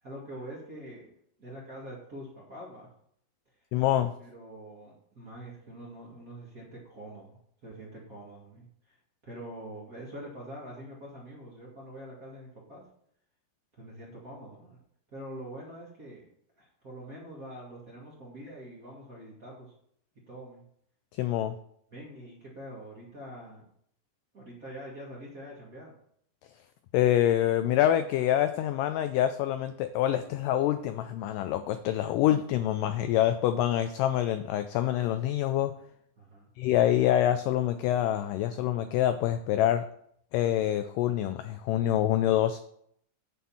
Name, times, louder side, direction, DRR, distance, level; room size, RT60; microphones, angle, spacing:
voice 1, 0.0-1.1 1.4-2.9 4.2-7.4 7.6-9.0 9.2-12.8 13.7-14.8 15.1-16.2 16.6-19.7 20.3-20.6 21.9-23.6 24.3-25.9 36.2-36.5, right 1 dB, 35° right, -5 dB, 1.5 m, -45 dB
voice 2, 3.7-4.1 21.1-21.6 26.9-35.7 36.6-39.8 40.3-42.6, left 12 dB, 85° left, 10 dB, 1.9 m, -26 dB
9.4 x 4.2 x 7.1 m, 0.69 s
omnidirectional pair, 4.3 m